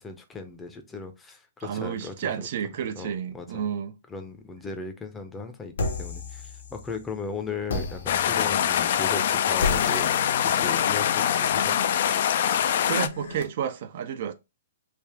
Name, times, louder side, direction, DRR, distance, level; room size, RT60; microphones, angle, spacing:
voice 1, 0.0-2.1 3.0-3.6 4.1-10.1 10.4-11.8, left 4 dB, 10° left, 0.6 m, -37 dB
voice 2, 1.6-4.0 12.9-14.3, right 8 dB, 55° right, 0.4 m, -31 dB
sound 1, 5.8-7.1 7.7-13.4, left 3 dB, 75° left, 0.9 m, -35 dB
sound 2, 8.1-13.1, left 9 dB, 60° left, 0.3 m, -24 dB
3.4 x 2.4 x 3.4 m
hypercardioid pair, 145°, 0 cm